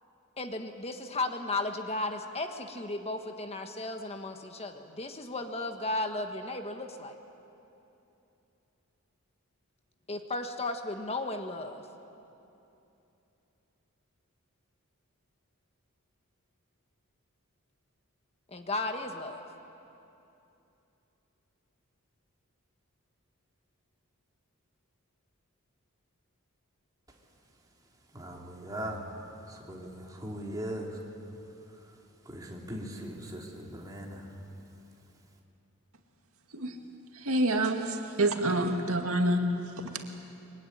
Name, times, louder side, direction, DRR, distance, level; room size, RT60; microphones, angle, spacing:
voice 1, 0.4-7.2 10.1-11.8 18.5-19.4, left 2 dB, 30° left, 6 dB, 1.4 m, -35 dB
voice 2, 28.1-29.0 29.7-30.9 32.3-34.2, right 1 dB, 15° right, -1 dB, 3.2 m, -39 dB
voice 3, 37.1-39.4 39.8-40.0, right 1 dB, 70° right, 4 dB, 2.1 m, -27 dB
24.0 x 23.0 x 9.9 m, 2.9 s
head